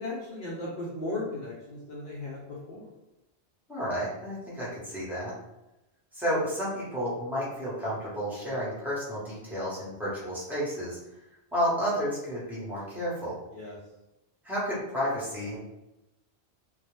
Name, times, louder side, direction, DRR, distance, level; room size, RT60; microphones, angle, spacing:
voice 1, 0.0-2.9 13.5-13.8, left 2 dB, 60° left, -6 dB, 0.6 m, -36 dB
voice 2, 3.7-5.3 6.1-11.0 11.5-13.4 14.4-15.6, equal, ahead, -9 dB, 0.8 m, -31 dB
2.3 x 2.0 x 3.0 m, 0.95 s
omnidirectional pair, 1.1 m